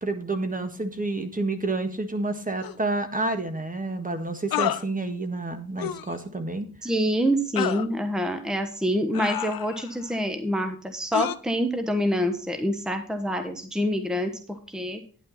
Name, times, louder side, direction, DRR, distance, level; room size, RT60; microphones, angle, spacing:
voice 1, 0.0-6.7, right 2 dB, 25° right, 7 dB, 1.5 m, -29 dB
sound 1, 2.6-2.7 4.5-4.8 5.8-6.1 7.6-7.9 9.1-9.9 11.1-11.4, left 11 dB, 75° left, 0.6 m, -29 dB
voice 2, 6.8-15.0, equal, ahead, 7 dB, 1.2 m, -26 dB
9.8 x 8.8 x 4.0 m, 0.42 s
cardioid pair, 60°, 36 cm